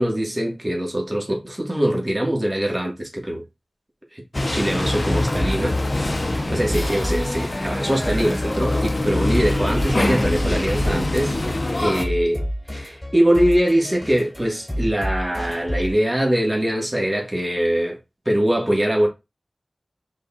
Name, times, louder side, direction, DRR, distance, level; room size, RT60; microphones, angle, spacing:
voice 1, 0.0-3.4 4.1-5.8 6.2-11.4 11.8-18.0 18.2-19.1, right 1 dB, 25° right, 1.6 m, -22 dB
sound 1, 4.3-12.0, left 2 dB, 45° left, 0.8 m, -24 dB
sound 2, 5.3-16.0, equal, 10° left, 2.6 m, -30 dB
5.2 x 4.0 x 2.4 m
wide cardioid pair, 45°, 0 cm